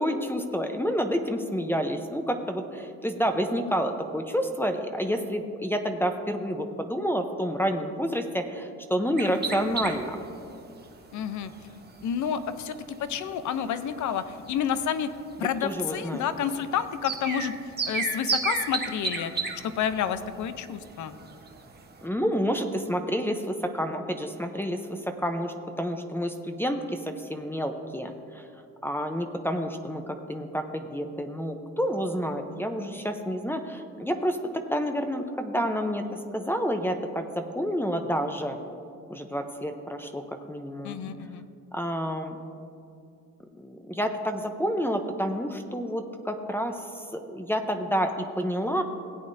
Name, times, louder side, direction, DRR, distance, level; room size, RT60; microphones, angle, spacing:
voice 1, 0.0-10.2 15.6-16.2 22.0-28.5 28.8-38.6 39.1-41.0 41.7-42.4 43.6-48.8, equal, 5° left, 6 dB, 0.7 m, -29 dB
sound 1, 9.2-22.1, right 4 dB, 35° right, 1.1 m, -35 dB
voice 2, 11.1-11.5 12.0-12.7 13.0-15.1 15.4-17.6 17.8-19.3 19.6-21.2 40.8-41.5, left 8 dB, 75° left, 12 dB, 0.7 m, -29 dB
17.0 x 8.5 x 2.6 m, 2.5 s
cardioid pair, 90°, 30 cm